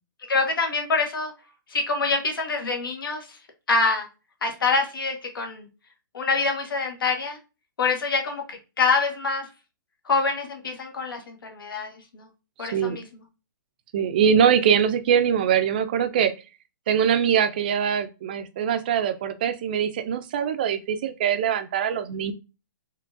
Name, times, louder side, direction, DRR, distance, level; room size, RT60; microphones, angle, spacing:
voice 1, 0.3-1.3 1.7-3.4 3.7-4.1 4.4-5.7 6.1-7.4 7.8-9.5 10.0-12.3 12.6-13.1, left 4 dB, 85° left, 3 dB, 1.5 m, -25 dB
voice 2, 12.6-13.0 13.9-16.3 16.9-22.3, right 8 dB, 25° right, 10 dB, 0.3 m, -22 dB
4.5 x 2.9 x 2.5 m, 0.29 s
hypercardioid pair, 170°, 11 cm